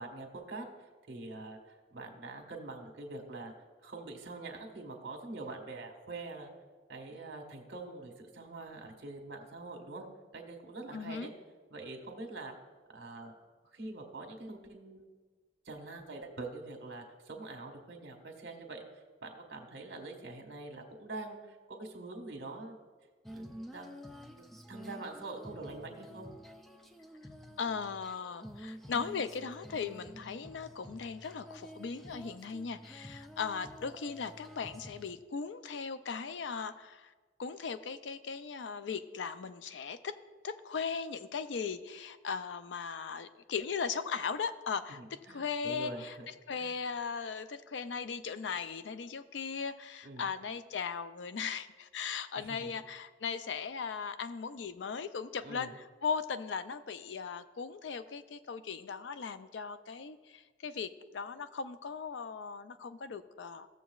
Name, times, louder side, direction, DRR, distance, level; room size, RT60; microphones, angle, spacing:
voice 1, 0.0-3.5 3.8-6.5 6.9-10.0 10.3-11.3 11.7-12.5 12.9-13.3 13.6-15.1 15.6-18.8 19.2-22.8 23.3-24.0 24.4-26.3 44.9-46.3 46.6-46.7 50.0-50.3 52.3-52.7 55.4-55.7, right 2 dB, 70° right, 3 dB, 1.5 m, -45 dB
voice 2, 10.9-11.3 27.6-37.1 37.4-40.2 40.4-46.2 46.5-63.7, left 5 dB, 80° left, 12 dB, 0.4 m, -38 dB
Female singing, 23.2-35.1, equal, ahead, 0.4 m, -50 dB
16.0 x 7.0 x 2.4 m, 1.4 s
head